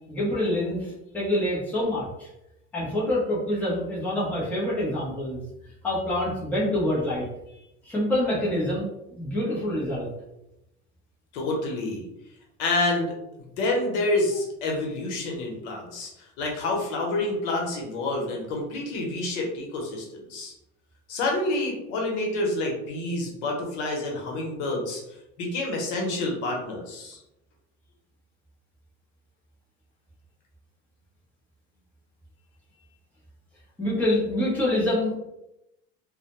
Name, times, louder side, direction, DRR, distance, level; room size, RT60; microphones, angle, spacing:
voice 1, 0.1-2.3 2.7-5.4 5.8-7.3 7.8-8.9 9.2-10.1 33.8-35.2, left 1 dB, 5° left, -7 dB, 0.6 m, -26 dB
voice 2, 11.3-12.1 12.6-13.2 13.6-20.5 21.1-25.0 25.4-27.2, left 2 dB, 85° left, 0 dB, 0.8 m, -28 dB
2.1 x 2.1 x 2.9 m, 0.88 s
cardioid pair, 155°, 34 cm